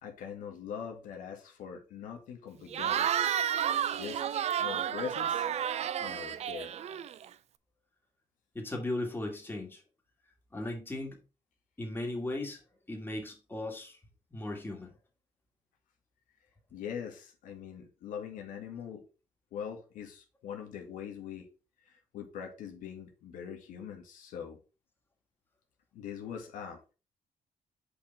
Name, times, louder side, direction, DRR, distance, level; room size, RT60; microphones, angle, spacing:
voice 1, 0.0-3.1 3.9-5.5 6.0-6.7 16.7-19.0 19.5-21.5 22.1-24.6 25.9-26.9, left 8 dB, 90° left, 3 dB, 2.0 m, -42 dB
Cheering / Crowd, 2.7-7.3, right 9 dB, 55° right, 0.5 m, -31 dB
voice 2, 8.5-9.8 10.5-11.2 11.8-12.6 12.9-14.0 14.3-14.9, left 1 dB, 15° left, 1 dB, 2.4 m, -37 dB
6.7 x 5.4 x 4.7 m, 0.32 s
cardioid pair, 110°, 13 cm